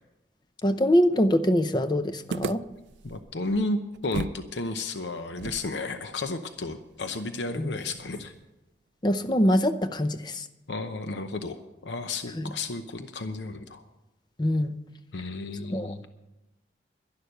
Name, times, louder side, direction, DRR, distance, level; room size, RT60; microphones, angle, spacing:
voice 1, 0.6-2.7 7.6-7.7 9.0-10.5 12.4-12.5 14.4-14.7 15.7-15.9, equal, 25° left, 10 dB, 0.6 m, -24 dB
sound 1, 2.3-4.5 4.7-4.8 5.4-8.5, right 4 dB, 90° right, 0.4 m, -39 dB
voice 2, 3.0-8.3 10.7-11.6 11.8-13.8 15.1-16.0, left 2 dB, 85° left, 8 dB, 0.8 m, -32 dB
11.5 x 11.5 x 6.6 m, 1.0 s
head